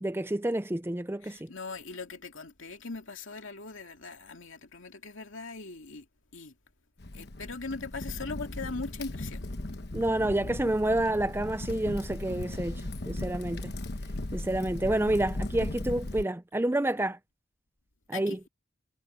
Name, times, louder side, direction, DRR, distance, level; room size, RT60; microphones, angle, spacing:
voice 1, 0.0-1.5 9.9-12.8 13.1-13.7 14.3-17.2 18.1-18.4, right 1 dB, 10° right, 0.5 m, -29 dB
voice 2, 1.2-6.0 6.3-6.5 7.1-9.4 18.1-18.5, left 3 dB, 70° left, 2.4 m, -40 dB
Crackle, 7.0-16.2, left 1 dB, 50° left, 1.2 m, -37 dB
head